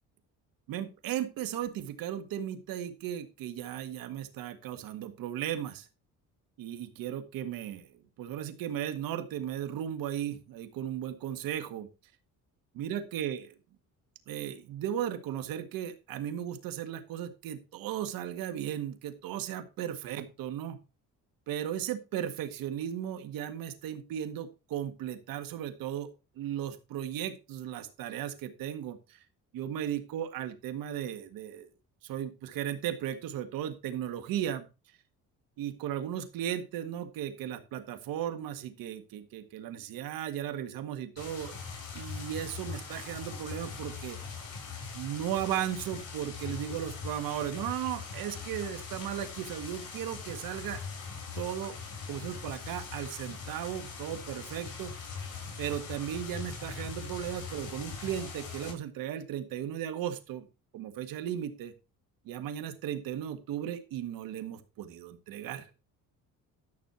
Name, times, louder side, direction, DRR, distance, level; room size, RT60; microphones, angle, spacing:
voice 1, 0.7-5.9 6.6-7.9 8.2-11.9 12.8-13.6 14.3-20.8 21.5-26.1 26.4-29.2 29.5-31.7 32.0-34.7 35.6-41.5 41.9-44.2 44.9-50.8 51.4-51.8 52.1-55.1 55.6-60.5 60.7-61.7 62.3-65.7, right 10 dB, 85° right, 9 dB, 1.8 m, -36 dB
sound 1, 41.2-58.7, left 5 dB, 60° left, 7.0 m, -41 dB
12.5 x 6.5 x 4.3 m, 0.29 s
cardioid pair, 110°, 34 cm